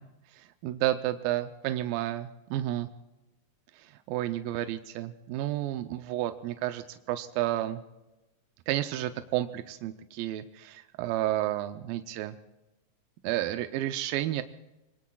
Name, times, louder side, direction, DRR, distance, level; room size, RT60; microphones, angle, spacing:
voice 1, 0.3-2.9 3.7-7.8 8.7-12.4 13.2-14.4, right 14 dB, 85° right, 8 dB, 2.5 m, -31 dB
26.5 x 21.5 x 2.3 m, 1.0 s
omnidirectional pair, 4.1 m